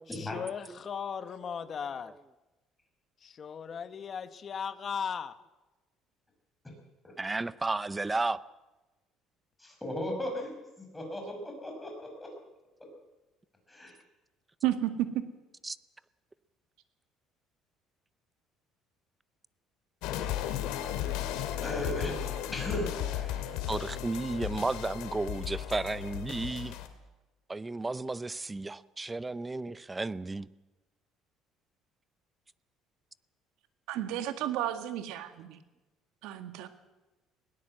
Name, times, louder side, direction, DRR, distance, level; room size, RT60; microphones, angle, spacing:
voice 1, 0.1-2.2 3.2-5.4, left 7 dB, 35° left, 12 dB, 1.0 m, -37 dB
voice 2, 7.2-8.4 15.6-15.8 23.7-26.8 27.5-30.5, right 3 dB, 15° right, 17 dB, 0.6 m, -33 dB
voice 3, 9.6-10.5 10.8-12.3 13.7-13.9 21.6-22.2 22.5-23.5, left 1 dB, 10° left, 1 dB, 6.1 m, -37 dB
voice 4, 14.6-15.2 33.9-35.6 36.2-36.7, right 12 dB, 80° right, 8 dB, 2.0 m, -32 dB
sound 1, 20.0-26.9, left 12 dB, 90° left, 2.4 m, -35 dB
20.5 x 17.5 x 7.9 m, 1.1 s
cardioid pair, 145°, 0 cm